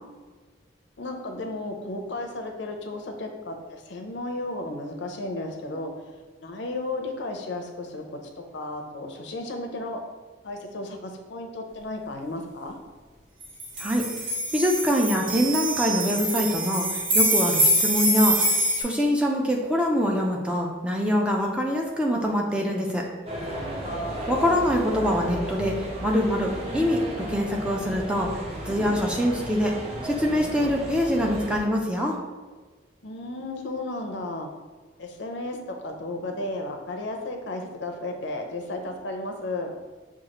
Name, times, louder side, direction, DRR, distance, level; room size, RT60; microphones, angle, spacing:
voice 1, 1.0-5.9 6.4-8.2 8.5-10.0 10.4-12.8 23.8-24.2 33.0-34.5 35.0-39.7, left 2 dB, 65° left, 4 dB, 0.5 m, -34 dB
sound 1, 13.4-18.8, equal, 80° right, 1.2 m, -24 dB
voice 2, 14.5-18.5 18.8-23.1 24.3-27.0 27.3-29.7 30.0-32.2, equal, 5° right, 0 dB, 0.4 m, -24 dB
sound 2, 23.3-31.6, equal, 30° right, 0.7 m, -34 dB
6.1 x 2.4 x 2.9 m, 1.4 s
head